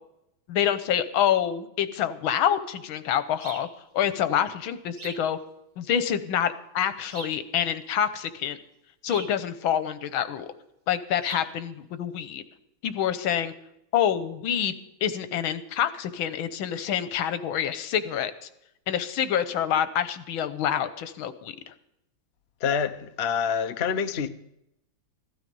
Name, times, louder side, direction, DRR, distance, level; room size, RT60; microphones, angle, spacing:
voice 1, 0.5-3.7 3.9-5.4 5.8-8.6 9.0-10.5 10.9-12.4 12.8-13.5 13.9-14.7 15.0-18.3 18.9-21.7, left 9 dB, 85° left, 12 dB, 1.7 m, -27 dB
sound 1, 3.4-3.7 5.0-5.3 7.1-7.5 9.1-9.4 11.2-11.5, right 3 dB, 30° right, 1.1 m, -41 dB
voice 2, 22.6-24.3, left 7 dB, 60° left, 9 dB, 0.6 m, -26 dB
15.5 x 13.0 x 5.4 m, 0.82 s
omnidirectional pair, 2.2 m